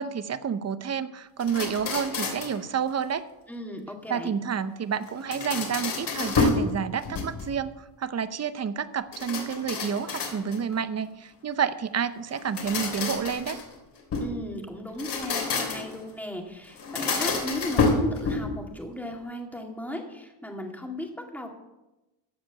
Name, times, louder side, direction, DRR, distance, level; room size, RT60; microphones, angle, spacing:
voice 1, 0.0-3.3 4.1-7.7 8.0-13.6, right 7 dB, 35° right, 13 dB, 0.7 m, -29 dB
sound 1, 1.4-2.6 5.0-6.7 7.0-7.6 9.1-10.7 12.3-14.4 14.9-16.0 16.8-18.6, left 4 dB, 55° left, 3.3 m, -29 dB
voice 2, 3.5-4.3 14.2-21.5, left 1 dB, 5° left, 1 dB, 2.1 m, -36 dB
15.0 x 5.1 x 9.0 m, 1.0 s
cardioid pair, 125°, 48 cm